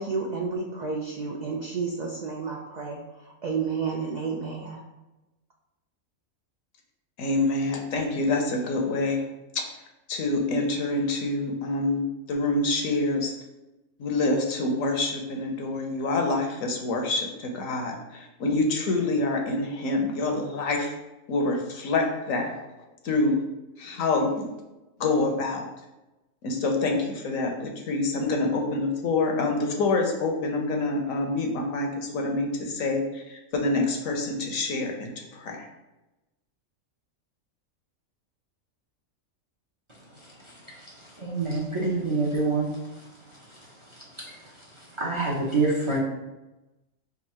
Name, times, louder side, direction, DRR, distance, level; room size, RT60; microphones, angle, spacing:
voice 1, 0.0-3.0 3.4-4.8, right 5 dB, 90° right, -1 dB, 0.3 m, -31 dB
voice 2, 7.2-9.3 9.5-9.6 10.1-12.0 12.3-13.3 14.0-20.9 21.3-22.5 23.0-23.4 23.8-24.5 25.0-25.6 26.4-35.7, left 2 dB, 80° left, 2 dB, 1.1 m, -26 dB
voice 3, 41.2-42.7 44.2-44.4 45.0-46.0, right 3 dB, 30° right, -4 dB, 0.5 m, -26 dB
3.6 x 2.6 x 4.3 m, 1.0 s
omnidirectional pair, 1.4 m